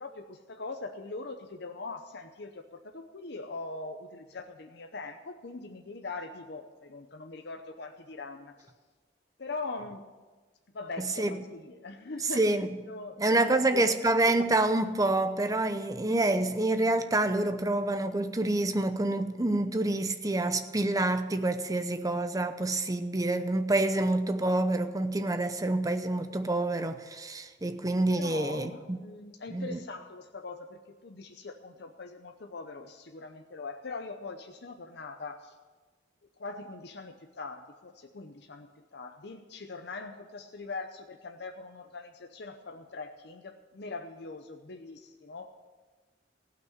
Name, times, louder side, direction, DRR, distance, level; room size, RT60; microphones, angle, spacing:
voice 1, 0.0-8.7 9.4-10.1 10.7-12.5 12.8-14.1 28.1-35.6 36.4-45.7, left 3 dB, 65° left, 0.8 m, -42 dB
voice 2, 12.4-12.7 13.2-29.0 29.5-29.8, right 2 dB, 20° right, 0.7 m, -27 dB
16.0 x 6.1 x 9.3 m
head